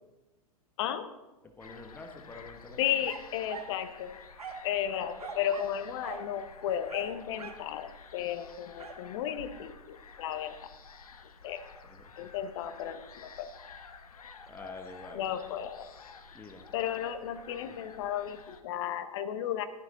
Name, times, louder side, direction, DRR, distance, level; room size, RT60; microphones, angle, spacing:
voice 1, 0.8-1.1 2.8-4.2 4.6-10.7 11.4-11.6 12.2-13.5 15.1-15.9 16.7-19.6, left 10 dB, 50° left, 10 dB, 1.0 m, -34 dB
voice 2, 1.4-2.8 11.8-12.3 14.5-15.2 16.3-16.7 17.6-17.7, left 3 dB, 10° left, 4 dB, 1.2 m, -47 dB
sound 1, 1.6-18.6, left 5 dB, 70° left, 1.0 m, -51 dB
sound 2, 3.0-3.8 4.4-4.7 5.2-5.8 6.0-6.3 6.9-7.7 8.8-9.0, right 4 dB, 75° right, 1.5 m, -42 dB
12.5 x 11.0 x 3.8 m, 1.1 s
figure-of-eight pair, 100°, 19 cm